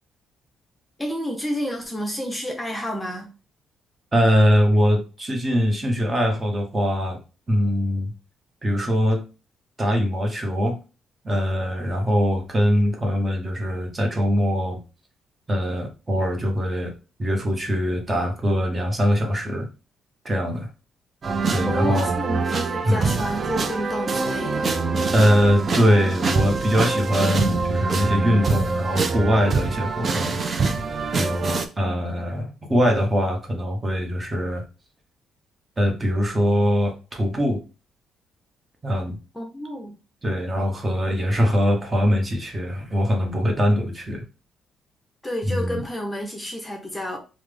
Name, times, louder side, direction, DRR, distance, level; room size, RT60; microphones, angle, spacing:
voice 1, 1.0-3.3 21.6-24.7 39.3-40.0 45.2-47.2, left 1 dB, 10° left, 0.7 m, -30 dB
voice 2, 4.1-7.2 7.5-8.1 8.6-9.2 9.8-10.8 11.2-14.8 15.5-16.9 17.2-19.7 20.2-20.7 21.5-22.1 22.8-23.0 25.1-30.4 31.1-34.6 35.8-37.6 38.8-39.2 40.2-44.2 45.5-45.8, equal, 25° right, 0.9 m, -22 dB
sound 1, 21.2-31.7, right 4 dB, 40° right, 0.4 m, -24 dB
3.3 x 2.0 x 3.3 m
cardioid pair, 90°, 0 cm